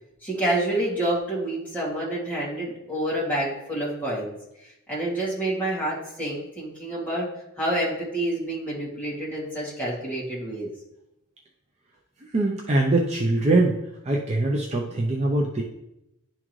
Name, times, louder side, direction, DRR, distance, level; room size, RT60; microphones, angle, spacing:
voice 1, 0.2-4.3 4.9-7.3 7.6-10.7, right 1 dB, 5° left, -8 dB, 2.3 m, -28 dB
voice 2, 12.3-13.8 14.1-15.6, right 2 dB, 30° right, 0 dB, 0.5 m, -22 dB
10.5 x 3.7 x 3.1 m, 0.86 s
head